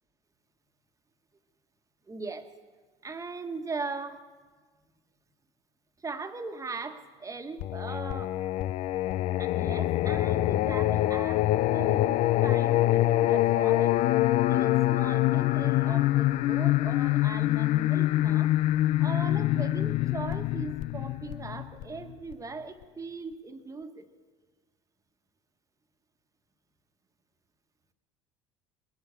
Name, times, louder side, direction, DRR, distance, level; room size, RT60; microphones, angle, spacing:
voice 1, 2.1-2.5 3.0-4.2 6.0-8.4 9.4-14.0 14.5-18.5 19.0-24.1, right 3 dB, 20° right, 7 dB, 1.5 m, -39 dB
Singing, 7.6-22.3, left 15 dB, 55° left, 0.4 m, -25 dB
21.5 x 8.1 x 6.9 m, 1.4 s
hypercardioid pair, 70°, 15 cm